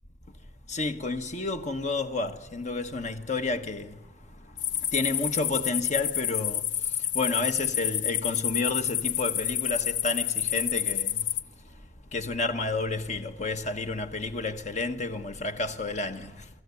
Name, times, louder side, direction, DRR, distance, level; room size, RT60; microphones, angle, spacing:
voice 1, 0.7-4.0 4.8-6.7 7.0-11.3 12.1-16.5, left 3 dB, 40° left, 1.3 m, -31 dB
sound 1, 4.6-11.4, left 11 dB, 75° left, 0.8 m, -29 dB
24.5 x 14.5 x 9.7 m
head